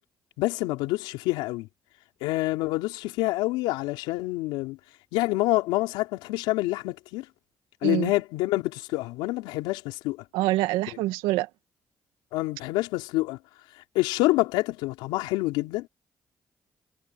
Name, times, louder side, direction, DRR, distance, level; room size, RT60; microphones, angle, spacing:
voice 1, 0.4-1.7 2.2-4.8 5.1-7.3 7.8-10.2 12.3-13.4 13.9-15.9, left 19 dB, 85° left, 3.9 m, -27 dB
voice 2, 10.3-11.5, right 17 dB, 85° right, 2.0 m, -25 dB
hypercardioid pair, 45°, 8 cm